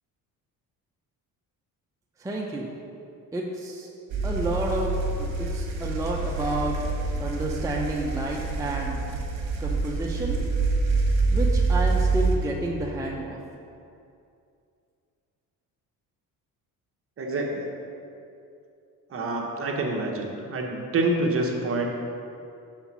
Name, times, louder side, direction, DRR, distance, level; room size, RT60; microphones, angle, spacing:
voice 1, 2.2-2.7 3.3-3.9 4.2-6.8 7.2-9.0 9.6-10.4 11.3-13.4, right 1 dB, 10° right, -2 dB, 0.5 m, -30 dB
sound 1, 4.1-12.4, right 3 dB, 70° right, 1.1 m, -26 dB
voice 2, 17.2-17.7 19.1-21.9, right 2 dB, 40° right, 0 dB, 1.0 m, -27 dB
5.6 x 4.0 x 5.9 m, 2.5 s
cardioid pair, 115°, 36 cm